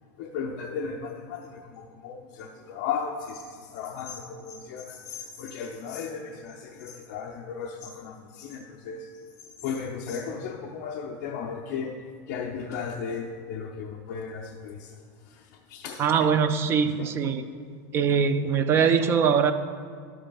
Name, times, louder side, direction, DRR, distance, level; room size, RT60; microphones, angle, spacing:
voice 1, 0.2-9.1 9.6-11.9 12.3-14.9 15.3-15.4 15.7-16.0 17.0-17.1, left 6 dB, 45° left, -1 dB, 0.6 m, -35 dB
voice 2, 16.0-17.4 17.9-19.5, right 6 dB, 25° right, 10 dB, 0.3 m, -22 dB
12.0 x 7.7 x 2.3 m, 2.1 s
supercardioid pair, 155°, 10 cm